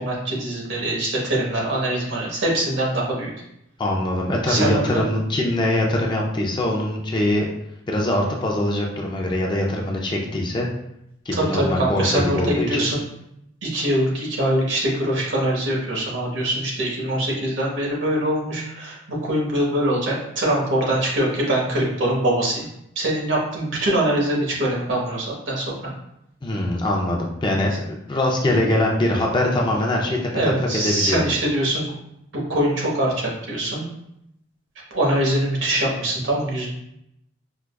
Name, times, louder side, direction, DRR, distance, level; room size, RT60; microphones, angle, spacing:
voice 1, 0.0-3.3 4.5-5.1 11.3-13.1 13.6-22.7 22.9-25.9 30.3-31.9 32.3-33.9 34.9-36.7, right 1 dB, 70° right, -3 dB, 1.1 m, -23 dB
voice 2, 3.8-7.5 7.9-10.7 11.3-12.9 26.4-30.2 30.8-31.2, left 1 dB, 25° left, -1 dB, 0.4 m, -22 dB
4.7 x 2.2 x 2.2 m, 0.81 s
head